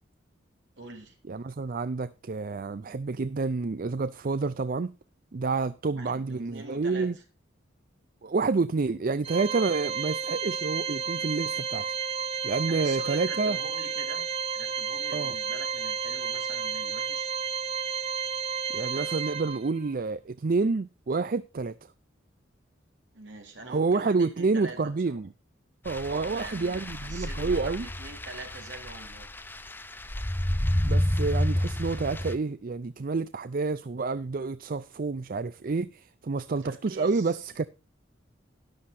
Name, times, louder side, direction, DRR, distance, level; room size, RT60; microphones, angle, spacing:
voice 1, 0.8-1.2 5.9-7.2 12.7-14.3 14.5-17.3 23.1-25.2 26.1-29.3 36.5-37.5, right 3 dB, 65° right, 3.8 m, -44 dB
voice 2, 1.3-4.9 5.3-7.1 8.2-11.9 12.4-13.6 15.1-15.3 18.7-21.8 23.7-25.3 25.8-27.9 30.8-37.7, right 4 dB, 50° right, 0.5 m, -29 dB
Organ, 9.2-19.9, right 6 dB, 30° right, 0.8 m, -32 dB
sound 1, 25.9-32.3, left 1 dB, 10° left, 0.8 m, -30 dB
13.0 x 11.5 x 2.7 m
head